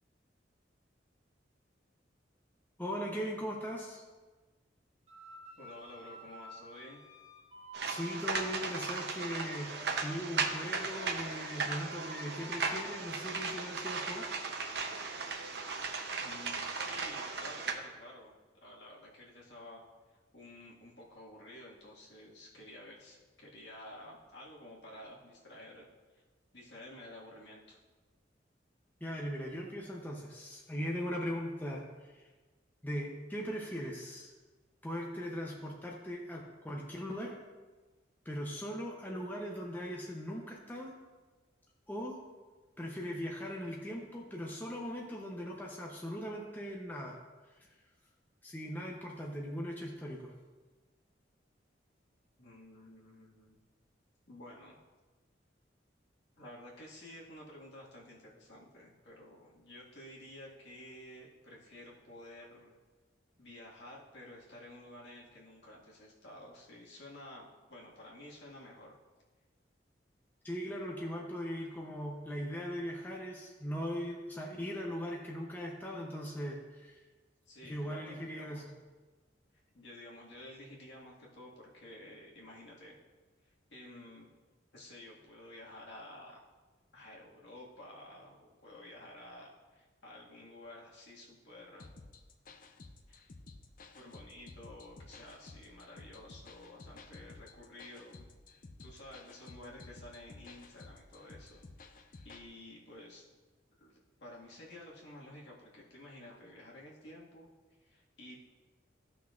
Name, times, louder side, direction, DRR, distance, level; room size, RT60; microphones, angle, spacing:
voice 1, 2.8-4.0 7.8-14.3 29.0-32.3 32.8-34.3 34.8-37.4 38.2-40.9 41.9-42.2 42.8-47.2 47.6-47.7 48.4-50.3 70.4-77.0 77.6-78.6, equal, 10° left, -2 dB, 0.7 m, -39 dB
sound 1, 5.1-10.3 10.8-16.1, equal, 30° right, 1.8 m, -54 dB
voice 2, 5.6-7.0 16.2-18.3 18.6-19.8 20.3-25.9 26.1-26.2 26.5-27.8 52.4-53.6 54.3-54.8 56.4-62.8 63.4-68.9 77.5-78.6 79.7-83.0 83.4-84.3 84.7-86.4 86.9-91.9 93.1-93.2 93.9-98.3 98.8-101.6 102.0-103.2 103.8-103.9 104.2-107.5 107.8-108.4, left 1 dB, 65° left, -4 dB, 1.9 m, -52 dB
sound 2, 7.7-17.7, right 4 dB, 60° right, 0.8 m, -37 dB
sound 3, 91.8-102.5, left 3 dB, 45° left, 0.5 m, -54 dB
14.5 x 5.9 x 2.5 m, 1.3 s
head